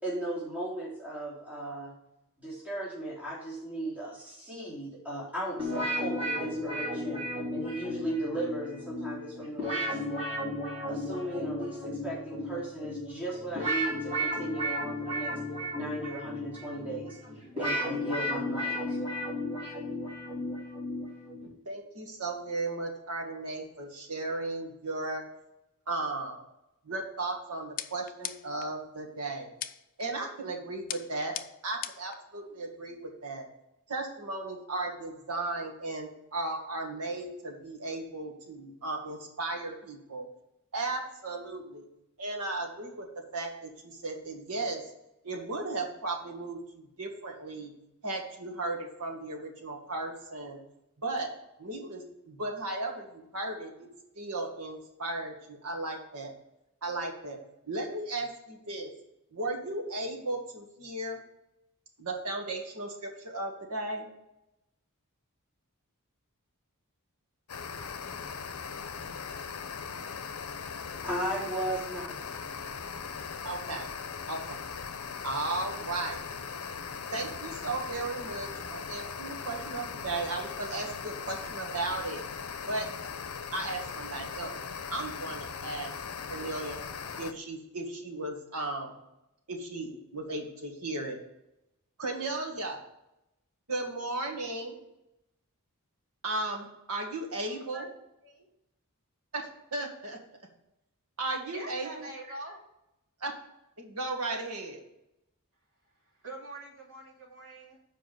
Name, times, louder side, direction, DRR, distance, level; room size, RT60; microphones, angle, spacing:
voice 1, 0.0-1.9 2.4-7.2 7.5-10.0 10.9-15.4 15.7-17.2 17.6-19.0 71.0-72.2, right 1 dB, 5° right, -7 dB, 3.2 m, -36 dB
sound 1, 5.6-21.5, equal, 25° right, 3.7 m, -34 dB
voice 2, 21.7-25.2 25.9-26.4 26.9-29.5 30.0-31.3 31.6-33.5 33.9-40.3 40.7-41.8 42.2-43.1 43.3-44.8 45.2-47.7 48.0-50.6 51.0-51.3 51.6-53.9 54.2-56.3 56.8-57.4 57.7-58.9 59.3-61.2 62.0-64.1 73.4-73.9 74.3-74.6 75.2-76.2 77.1-82.2 82.7-82.9 83.5-84.5 84.9-85.9 86.3-86.8 87.2-88.9 89.5-91.2 92.0-92.8 93.7-94.8 96.2-97.9 99.3-100.2 101.2-102.1 103.2-103.3 103.8-104.8, right 2 dB, 85° right, 3 dB, 1.8 m, -35 dB
sound 2, 27.8-28.7 29.6-30.1 30.9-32.2, left 11 dB, 40° left, 0.4 m, -39 dB
sound 3, 67.5-87.3, left 6 dB, 75° left, 0.7 m, -39 dB
voice 3, 97.4-97.8 98.2-98.5 101.5-102.6 106.0-107.8, right 2 dB, 65° right, -2 dB, 2.5 m, -45 dB
7.4 x 5.1 x 6.7 m, 0.86 s
head